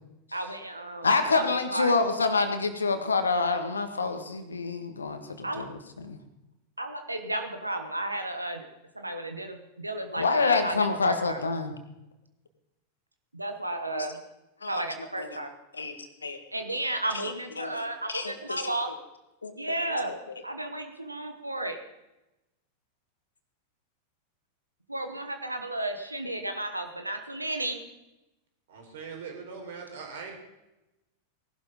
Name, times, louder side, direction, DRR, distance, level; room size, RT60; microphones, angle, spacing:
voice 1, 0.3-1.9 5.4-5.6 6.8-8.6 8.9-11.4 13.3-14.2 14.7-15.5 16.5-18.9 19.6-20.1 20.4-21.8 24.9-27.8, right 1 dB, 85° right, 6 dB, 1.3 m, -33 dB
voice 2, 1.0-5.7 6.0-6.2 10.2-11.7 13.9-14.1 14.6-14.8 15.2-15.3 15.7-15.9 16.2-16.4 17.2-18.7 19.4-19.5 20.1-20.2, left 4 dB, 75° left, 8 dB, 1.7 m, -27 dB
voice 3, 28.7-30.3, right 5 dB, 60° right, 2 dB, 4.3 m, -41 dB
18.0 x 12.0 x 5.3 m, 0.96 s
figure-of-eight pair, 90°, 0 cm